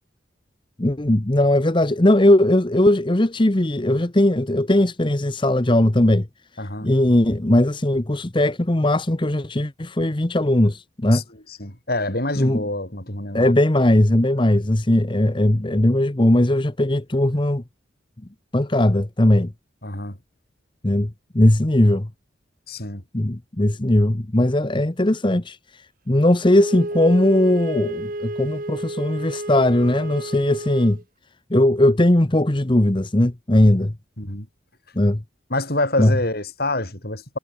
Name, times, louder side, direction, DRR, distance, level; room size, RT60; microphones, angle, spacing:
voice 1, 0.8-6.3 6.6-11.2 12.4-12.6 13.3-17.6 18.5-19.5 20.8-22.1 23.1-31.0 31.5-33.9 34.9-35.2 36.0-36.1, left 1 dB, 25° left, 1.0 m, -19 dB
voice 2, 6.6-6.9 11.1-11.2 11.5-13.5 19.8-20.2 22.7-23.0 34.2-34.5 35.5-37.4, left 2 dB, 50° left, 5.9 m, -26 dB
Wind instrument woodwind instrument, 26.5-31.0, right 1 dB, 45° right, 1.8 m, -31 dB
head